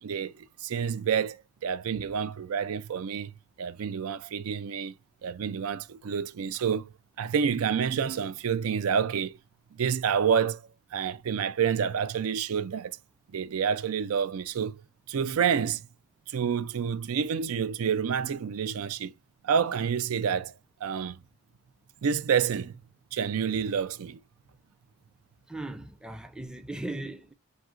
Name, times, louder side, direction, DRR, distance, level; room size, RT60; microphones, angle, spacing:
voice 1, 0.0-3.3 3.6-4.9 5.2-6.9 7.2-9.4 9.8-10.6 10.9-13.0 13.3-14.8 15.1-15.8 16.3-19.1 19.4-20.5 20.8-21.2 22.0-22.8 23.1-24.2, right 7 dB, 90° right, 0.4 m, -28 dB
voice 2, 25.5-27.3, right 2 dB, 5° right, 0.4 m, -38 dB
7.5 x 2.8 x 2.4 m
head